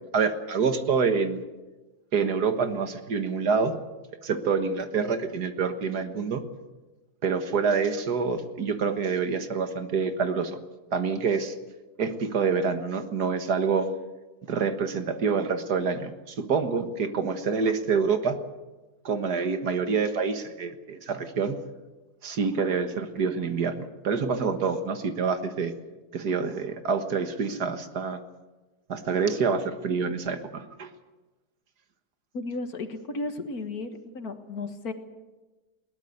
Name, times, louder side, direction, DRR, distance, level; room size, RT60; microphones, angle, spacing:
voice 1, 0.1-1.4 2.1-3.7 4.2-6.4 7.2-10.6 10.9-11.5 12.0-14.0 14.5-18.4 19.0-21.6 22.2-25.7 26.1-28.2 28.9-30.9, right 5 dB, 75° right, 8 dB, 2.1 m, -27 dB
voice 2, 32.3-34.9, left 3 dB, 65° left, 8 dB, 2.1 m, -34 dB
21.5 x 18.5 x 8.1 m, 1.2 s
omnidirectional pair, 1.7 m